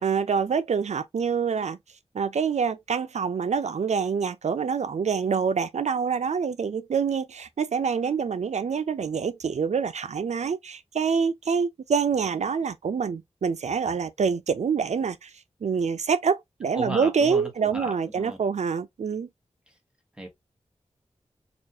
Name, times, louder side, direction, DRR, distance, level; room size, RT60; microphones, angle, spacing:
voice 1, 0.0-1.8 2.1-15.3 15.6-19.3, right 6 dB, 80° right, 0.5 m, -26 dB
voice 2, 16.7-18.4 20.2-20.3, right 1 dB, 10° right, 1.2 m, -35 dB
4.3 x 2.5 x 2.7 m
wide cardioid pair, 95°, 11 cm